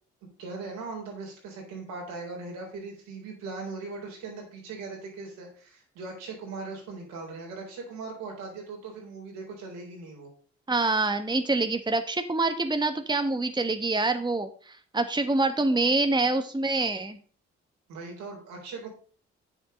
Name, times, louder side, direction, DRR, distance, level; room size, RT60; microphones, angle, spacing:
voice 1, 0.4-10.3 17.9-18.9, right 3 dB, 75° right, 0 dB, 3.8 m, -39 dB
voice 2, 10.7-17.2, right 2 dB, 15° right, 8 dB, 1.3 m, -26 dB
9.4 x 7.3 x 5.2 m, 0.42 s
hypercardioid pair, 40°, 32 cm